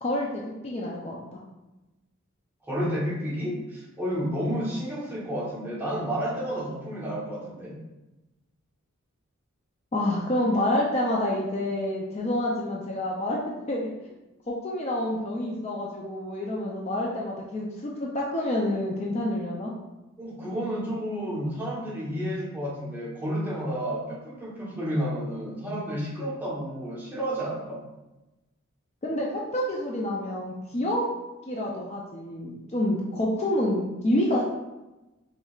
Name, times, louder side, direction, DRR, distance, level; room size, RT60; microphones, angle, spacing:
voice 1, 0.0-1.4 9.9-14.1 14.5-19.7 29.0-31.1 31.5-34.4, left 1 dB, 30° left, -3 dB, 0.4 m, -28 dB
voice 2, 2.6-7.7 20.2-27.8, equal, 10° right, -6 dB, 0.9 m, -31 dB
4.6 x 3.1 x 2.4 m, 1.0 s
head